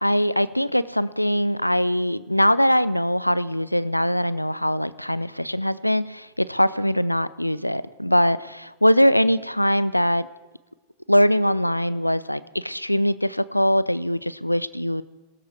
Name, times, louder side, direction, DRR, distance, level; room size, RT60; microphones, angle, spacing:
voice 1, 0.0-10.3 11.1-15.0, equal, 90° left, 18 dB, 0.4 m, -22 dB
17.5 x 13.5 x 4.8 m, 1.1 s
figure-of-eight pair, 90°, 0 cm